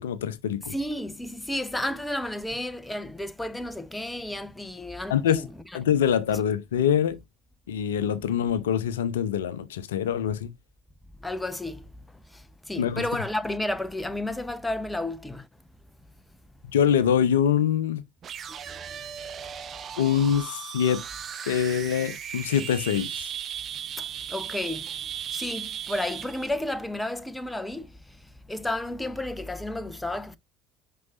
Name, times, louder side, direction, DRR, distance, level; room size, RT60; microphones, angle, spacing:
voice 1, 0.0-0.7 5.1-5.5 5.7-7.2 7.7-10.5 12.8-13.1 16.7-18.0 20.0-21.0 21.5-23.3, left 9 dB, 70° left, 0.6 m, -24 dB
voice 2, 0.7-5.5 11.2-11.8 12.7-15.4 24.0-24.8 25.3-27.9 28.5-30.4, left 1 dB, 10° left, 0.8 m, -32 dB
sound 1, 18.2-26.5, right 9 dB, 40° right, 0.9 m, -37 dB
9.5 x 5.7 x 2.5 m
figure-of-eight pair, 60°, 0 cm